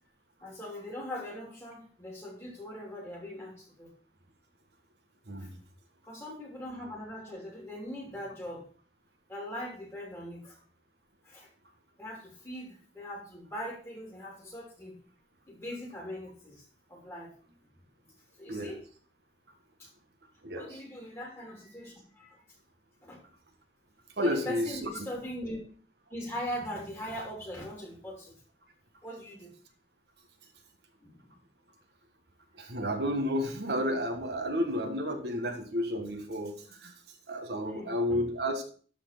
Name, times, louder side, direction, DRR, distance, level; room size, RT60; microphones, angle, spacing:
voice 1, 0.4-3.9 5.4-5.5 6.0-8.7 9.3-10.6 11.2-11.5 12.0-15.0 15.5-17.5 18.4-18.8 19.8-19.9 20.5-22.4 23.0-23.2 24.2-25.6 26.1-28.3 29.0-29.5 31.0-31.3 37.6-38.2, equal, 15° left, -2 dB, 3.2 m, -41 dB
voice 2, 5.3-5.6 18.5-18.7 20.4-20.8 24.2-24.9 32.5-38.6, equal, 65° right, 4 dB, 1.4 m, -32 dB
12.5 x 4.4 x 5.8 m, 0.43 s
head